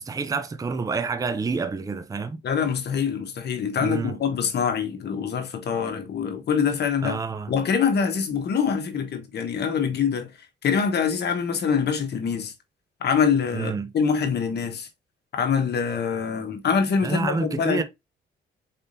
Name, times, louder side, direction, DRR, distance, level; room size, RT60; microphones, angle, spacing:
voice 1, 0.0-2.4 3.8-4.2 7.0-7.5 13.5-13.9 17.0-17.8, right 4 dB, 15° right, 0.5 m, -28 dB
voice 2, 2.4-7.2 7.5-10.3 10.6-12.5 13.0-14.9 15.3-17.8, left 6 dB, 55° left, 1.1 m, -24 dB
4.1 x 3.6 x 2.6 m
cardioid pair, 90°, 20 cm